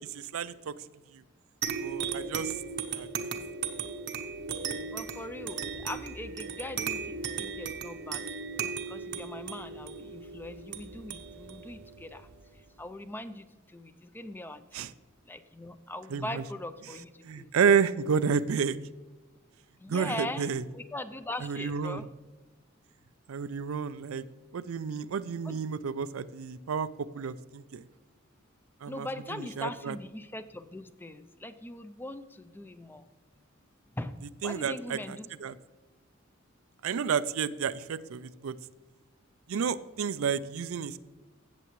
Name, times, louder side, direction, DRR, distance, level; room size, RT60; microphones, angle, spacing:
voice 1, 0.1-0.7 1.8-2.5 2.9-3.3 14.7-14.9 16.1-16.4 17.2-18.8 19.9-20.6 21.4-22.0 23.3-24.2 24.5-27.8 28.8-29.1 29.4-29.9 34.4-35.5 36.8-38.5 39.5-41.0, right 6 dB, 90° right, 15 dB, 0.4 m, -30 dB
sound 1, 1.6-12.7, right 6 dB, 55° right, 0.8 m, -37 dB
voice 2, 4.8-12.3 12.8-14.9 15.3-17.5 19.8-22.1 25.4-25.6 28.9-33.1 34.0-34.2 34.4-35.3, left 1 dB, 10° left, 11 dB, 0.4 m, -41 dB
16.5 x 6.9 x 3.1 m, 1.2 s
head